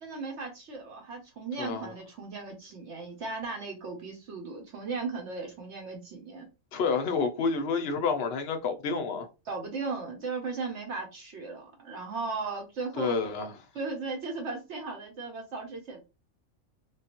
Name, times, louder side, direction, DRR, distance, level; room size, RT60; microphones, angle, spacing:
voice 1, 0.0-6.5 9.5-13.2 13.7-16.1, right 4 dB, 65° right, 0.9 m, -36 dB
voice 2, 1.6-1.9 6.7-9.3 13.0-13.5, left 5 dB, 60° left, 0.7 m, -29 dB
3.3 x 2.3 x 2.9 m
omnidirectional pair, 1.4 m